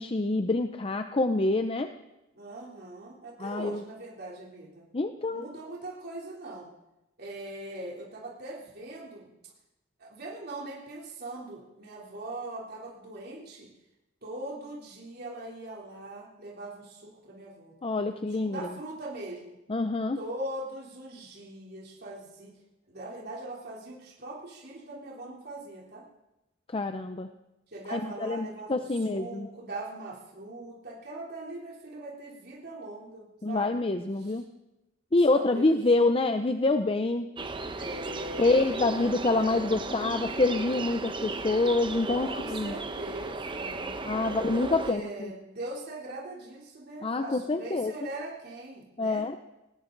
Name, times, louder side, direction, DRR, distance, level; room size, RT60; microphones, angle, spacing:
voice 1, 0.0-1.9 3.4-3.8 4.9-5.5 17.8-18.7 19.7-20.2 26.7-27.3 27.9-29.5 33.4-34.5 35.1-37.3 38.4-42.7 44.0-45.3 47.0-47.9 49.0-49.4, left 2 dB, 30° left, 8 dB, 0.6 m, -26 dB
voice 2, 2.3-4.8 5.3-6.7 7.2-9.3 10.0-13.7 14.2-17.7 18.3-19.5 20.1-22.5 22.9-26.0 27.7-33.7 34.2-34.3 35.3-35.8 37.7-39.6 42.0-44.1 44.5-49.2, right 1 dB, 55° right, -4 dB, 3.4 m, -41 dB
sound 1, 37.4-44.9, right 3 dB, 25° right, 0.9 m, -35 dB
19.0 x 18.5 x 3.9 m, 0.97 s
head